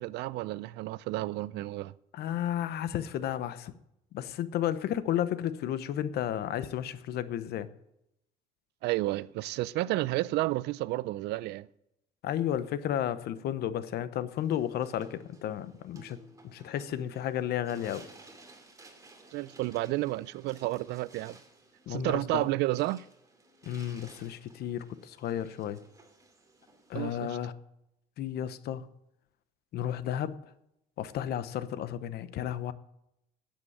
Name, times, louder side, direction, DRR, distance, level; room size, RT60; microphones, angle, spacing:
voice 1, 0.0-1.9 8.8-11.7 19.3-21.4 21.9-23.1 26.9-27.4, right 18 dB, 85° right, 0.5 m, -31 dB
voice 2, 2.1-3.7 4.1-7.7 12.2-16.2 16.4-18.0 21.9-22.4 23.7-25.8 26.9-27.5 28.2-28.9 29.7-30.4 31.0-32.7, left 10 dB, 70° left, 0.9 m, -33 dB
sound 1, 14.4-27.3, right 2 dB, 20° right, 2.4 m, -56 dB
9.8 x 8.3 x 8.8 m
cardioid pair, 110°, 17 cm